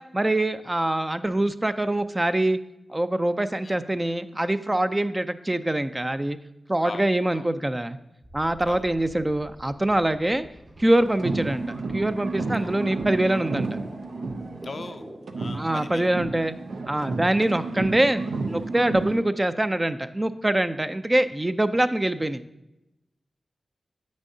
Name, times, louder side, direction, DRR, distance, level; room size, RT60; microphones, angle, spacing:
voice 1, 0.0-2.6 2.9-6.4 6.7-8.0 8.3-10.5 10.8-13.8 15.5-16.5 16.9-18.2 18.5-22.4, right 1 dB, 25° right, 11 dB, 0.4 m, -24 dB
voice 2, 6.8-7.5 8.7-8.8 12.6-13.0 14.6-16.1, left 3 dB, 65° left, 9 dB, 0.4 m, -40 dB
sound 1, 8.2-15.4, right 1 dB, 50° right, 1.7 m, -46 dB
sound 2, 11.1-15.0 15.3-19.3, right 3 dB, 80° right, 0.5 m, -31 dB
8.2 x 6.3 x 2.7 m, 0.93 s
cardioid pair, 40°, 0 cm